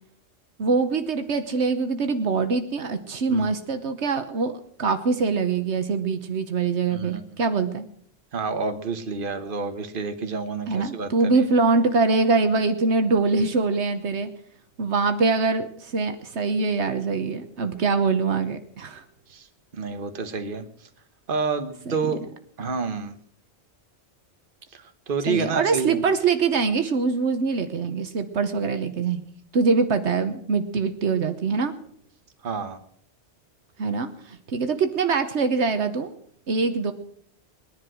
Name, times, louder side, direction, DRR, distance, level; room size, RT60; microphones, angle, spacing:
voice 1, 0.6-7.9 10.7-14.3 14.8-19.0 21.9-22.0 25.3-29.2 29.5-31.8 33.8-36.1 36.5-36.9, right 4 dB, 75° right, 8 dB, 1.3 m, -23 dB
voice 2, 6.9-7.2 8.3-11.1 19.3-19.5 19.7-20.7 21.3-22.2 22.6-23.2 24.7-26.0 32.4-32.8, right 4 dB, 50° right, 8 dB, 1.4 m, -29 dB
20.0 x 10.5 x 6.2 m, 0.64 s
omnidirectional pair, 1.2 m